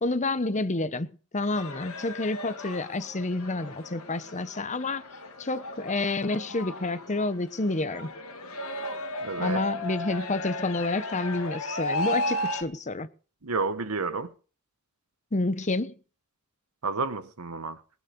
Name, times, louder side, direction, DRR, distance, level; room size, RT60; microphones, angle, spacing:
voice 1, 0.0-1.1 1.3-5.0 5.4-8.1 9.4-13.1 15.3-15.9, left 2 dB, 35° left, 1.0 m, -29 dB
sound 1, 1.5-12.6, left 1 dB, 70° left, 2.4 m, -35 dB
voice 2, 9.2-9.6 13.4-14.3 16.8-17.8, right 4 dB, 90° right, 1.3 m, -30 dB
20.0 x 9.5 x 5.3 m
head